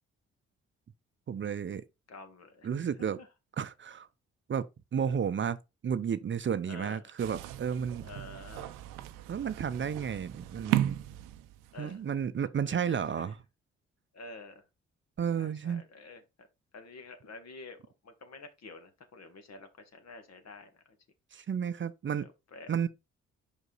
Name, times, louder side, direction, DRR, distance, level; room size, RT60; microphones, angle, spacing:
voice 1, 1.3-1.9 2.6-3.2 3.6-4.1 4.5-5.6 5.8-8.1 9.3-11.0 11.8-13.4 15.2-15.8 21.3-22.3 22.7-22.9, right 7 dB, 40° right, 0.6 m, -32 dB
voice 2, 2.1-2.9 3.2-3.3 6.7-7.0 8.0-8.7 11.7-12.0 12.6-13.3 14.1-14.6 15.4-16.5 16.7-20.8 22.2-22.7, left 3 dB, 55° left, 1.6 m, -49 dB
sound 1, 7.2-11.9, right 13 dB, 85° right, 0.6 m, -35 dB
5.2 x 5.2 x 4.0 m
hypercardioid pair, 50°, 31 cm